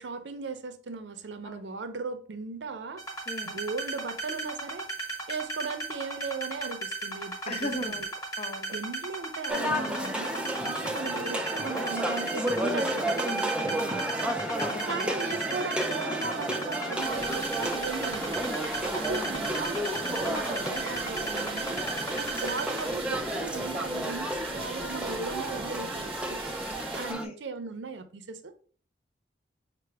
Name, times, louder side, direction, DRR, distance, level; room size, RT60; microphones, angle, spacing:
voice 1, 0.0-3.0 3.4-4.9 5.3-7.9 8.7-14.0 14.9-18.3 18.9-21.8 22.2-26.4 27.0-28.5, right 4 dB, 75° right, 0.5 m, -37 dB
sound 1, 3.0-22.9, right 3 dB, 20° left, 1.1 m, -35 dB
voice 2, 3.3-3.6 7.5-8.1 8.4-8.7 14.6-15.1 18.9-19.5 27.1-27.3, left 1 dB, 35° left, 0.7 m, -37 dB
sound 2, 9.5-27.3, right 1 dB, 5° right, 0.4 m, -32 dB
sound 3, 17.0-27.1, right 4 dB, 35° right, 0.8 m, -42 dB
5.7 x 2.0 x 3.3 m
head